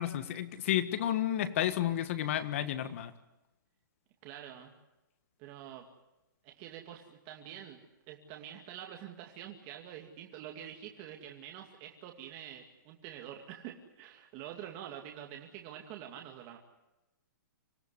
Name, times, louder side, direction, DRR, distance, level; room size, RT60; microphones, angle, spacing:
voice 1, 0.0-3.1, left 11 dB, 40° left, 12 dB, 1.6 m, -31 dB
voice 2, 4.2-4.7 5.4-5.9 6.4-7.8 8.1-16.6, right 10 dB, 25° right, 2 dB, 2.3 m, -46 dB
26.0 x 17.5 x 9.7 m, 0.98 s
hypercardioid pair, 165°, 11 cm